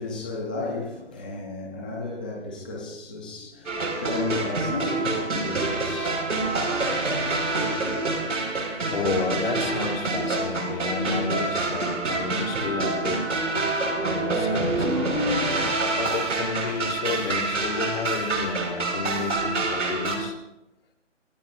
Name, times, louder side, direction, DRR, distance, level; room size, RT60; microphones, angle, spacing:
voice 1, 0.0-6.5, left 3 dB, 10° left, 0.6 m, -34 dB
sound 1, 3.7-20.2, right 2 dB, 80° right, 5.1 m, -26 dB
voice 2, 8.9-13.3 14.0-15.0 15.9-20.4, left 4 dB, 50° left, 3.6 m, -31 dB
26.0 x 16.0 x 2.6 m
hypercardioid pair, 165°, 36 cm